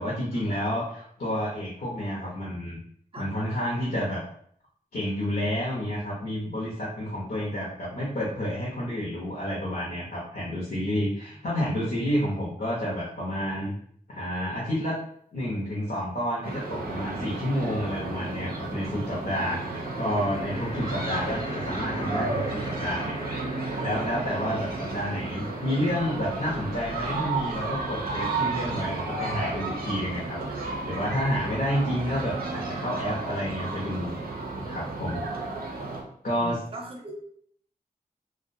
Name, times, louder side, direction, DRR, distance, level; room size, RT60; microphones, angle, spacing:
voice 1, 0.0-2.8 3.2-4.2 4.9-13.7 14.1-15.0 15.3-23.2 23.8-35.3 36.2-36.6, equal, 75° left, -6 dB, 0.7 m, -30 dB
voice 2, 11.6-12.1 12.6-12.8 19.5-19.6 26.5-26.6 30.6-30.7 36.4-37.1, right 2 dB, 35° right, 0 dB, 0.6 m, -43 dB
sound 1, 16.4-17.1 19.6-30.9, left 2 dB, 40° left, 0.4 m, -43 dB
sound 2, 16.4-36.0, right 3 dB, 90° right, 0.5 m, -33 dB
2.5 x 2.1 x 2.5 m, 0.63 s
wide cardioid pair, 65°, 15 cm